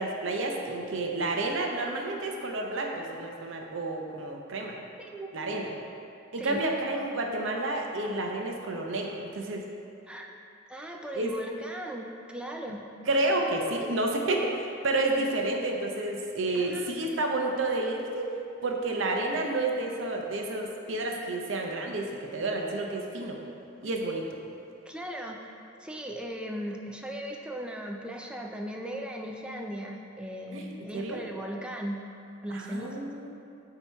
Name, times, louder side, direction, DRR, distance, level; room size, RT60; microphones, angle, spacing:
voice 1, 0.0-4.7 5.3-5.7 6.3-9.6 11.2-11.3 13.1-18.3 18.6-23.4 23.8-24.2 30.5-30.7 30.9-31.2 32.5-33.3, right 2 dB, 65° right, 1 dB, 0.7 m, -30 dB
voice 2, 5.0-5.3 6.4-6.6 10.1-10.3 10.7-12.9 16.5-17.1 24.9-32.0 32.4-33.1, equal, 5° right, 1 dB, 0.4 m, -38 dB
8.1 x 2.9 x 4.4 m, 2.6 s
head